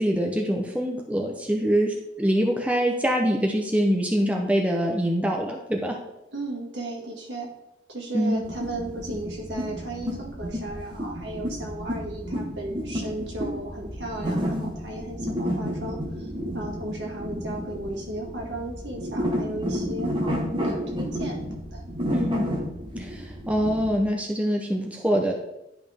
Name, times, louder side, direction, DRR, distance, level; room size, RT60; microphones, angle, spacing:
voice 1, 0.0-6.0 8.1-8.4 22.1-22.5 23.0-25.3, equal, 5° right, 1 dB, 0.6 m, -24 dB
voice 2, 6.0-7.5 7.9-21.8, right 2 dB, 65° right, -1 dB, 2.0 m, -35 dB
sound 1, 8.4-24.0, equal, 25° right, 1.3 m, -31 dB
11.0 x 5.2 x 3.5 m, 0.89 s
head